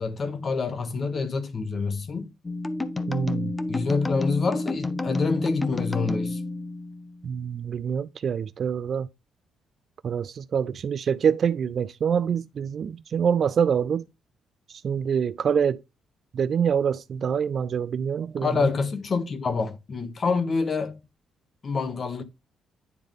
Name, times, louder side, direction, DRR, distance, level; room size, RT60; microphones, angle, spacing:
voice 1, 0.0-2.3 3.7-6.4 18.4-21.0 21.6-22.2, left 4 dB, 40° left, 1.0 m, -27 dB
sound 1, 2.4-7.3, left 2 dB, 20° left, 0.6 m, -30 dB
voice 2, 3.1-3.6 7.2-9.1 10.0-14.0 14.7-15.8 16.3-18.5, right 7 dB, 55° right, 0.3 m, -25 dB
9.4 x 3.4 x 3.6 m
cardioid pair, 90°, 0 cm